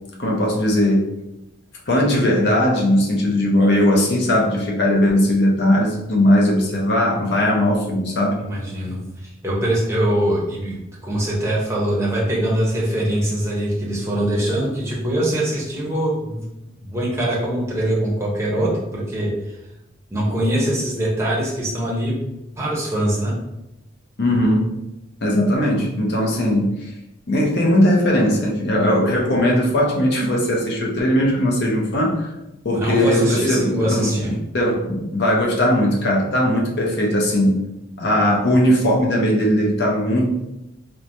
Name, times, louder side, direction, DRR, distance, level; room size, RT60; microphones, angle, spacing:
voice 1, 0.2-1.1 1.9-8.4 24.2-24.7 25.2-26.8 27.3-32.3 32.6-37.6 38.0-40.3, left 1 dB, 55° left, -2 dB, 0.6 m, -19 dB
voice 2, 8.4-16.4 16.8-19.5 20.1-22.1 22.6-23.3 32.7-34.3, right 1 dB, 15° right, -5 dB, 0.7 m, -23 dB
3.0 x 2.1 x 2.6 m, 0.90 s
head